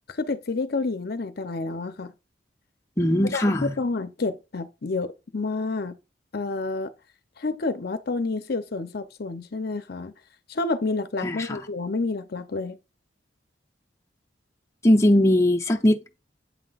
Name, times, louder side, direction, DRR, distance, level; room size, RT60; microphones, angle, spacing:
voice 1, 0.1-2.1 3.3-6.0 6.3-6.9 7.4-10.1 10.5-12.8, left 3 dB, 55° left, 0.7 m, -29 dB
voice 2, 3.0-3.7 11.2-11.6 14.8-16.2, left 1 dB, 15° left, 0.7 m, -20 dB
8.3 x 5.9 x 2.4 m
head